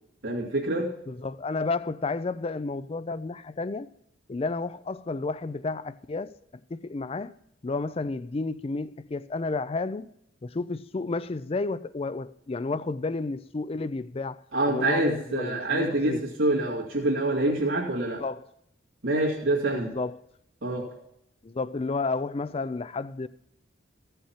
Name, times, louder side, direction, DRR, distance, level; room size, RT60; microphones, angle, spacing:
voice 1, 0.2-0.9 14.5-18.2 19.0-19.9 20.6-20.9, right 2 dB, 85° right, 2.2 m, -26 dB
voice 2, 1.1-3.9 4.3-6.4 6.7-7.4 7.6-10.1 10.4-16.2 18.2-18.5 19.7-20.2 21.4-23.3, left 3 dB, 30° left, 0.4 m, -31 dB
15.5 x 5.6 x 5.8 m
head